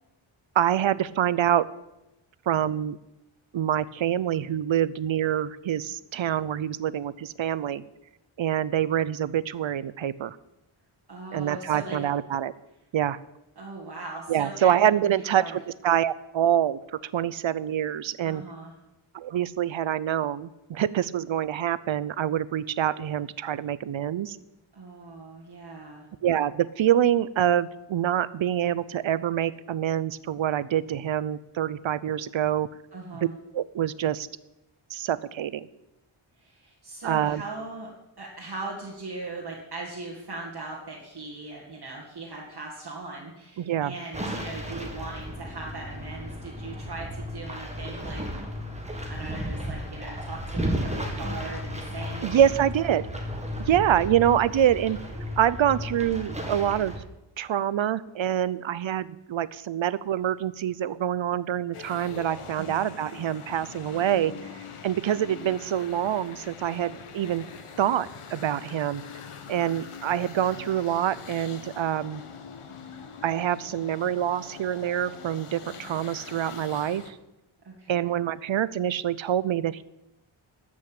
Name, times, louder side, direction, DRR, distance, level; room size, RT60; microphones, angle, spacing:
voice 1, 0.6-1.7 2.5-3.0 3.5-7.8 8.4-10.4 11.3-12.5 12.9-13.2 14.3-18.4 19.1-24.4 26.2-32.7 33.5-34.3 34.9-35.7 37.0-37.4 43.6-43.9 52.2-53.0 53.7-55.0 55.4-56.9 57.4-64.3 64.8-67.4 67.8-69.0 69.5-72.2 73.2-77.2 77.9-79.8, right 10 dB, 65° right, 18 dB, 0.6 m, -26 dB
voice 2, 11.1-12.0 13.6-15.5 18.2-18.7 24.7-26.1 32.9-33.3 36.4-37.9 38.2-48.2 48.8-52.5 52.8-52.9 62.6-62.8 77.6-78.1, right 3 dB, 50° right, -4 dB, 2.2 m, -39 dB
sound 1, 44.1-57.0, equal, 15° right, 1.8 m, -34 dB
sound 2, 61.7-77.1, left 6 dB, 80° left, 1.4 m, -43 dB
13.5 x 6.2 x 8.8 m, 0.93 s
wide cardioid pair, 135°, 50 cm